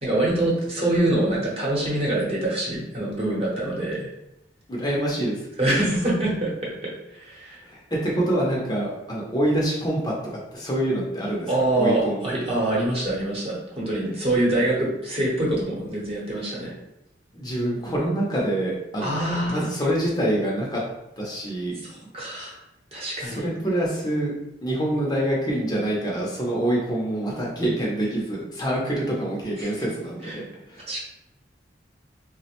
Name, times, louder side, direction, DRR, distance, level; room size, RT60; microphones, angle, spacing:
voice 1, 0.0-4.1 5.6-7.6 11.5-16.8 19.0-19.6 21.8-22.6 22.9-23.5 29.6-29.7 30.2-30.5 30.9-31.0, right 1 dB, 35° right, -5 dB, 0.9 m, -25 dB
voice 2, 4.7-5.5 7.6-10.1 10.5-11.5 11.8-12.3 17.3-20.8 21.2-21.8 23.2-24.3 24.6-31.0, right 1 dB, 20° left, -4 dB, 0.6 m, -26 dB
3.3 x 2.1 x 2.9 m, 0.87 s
head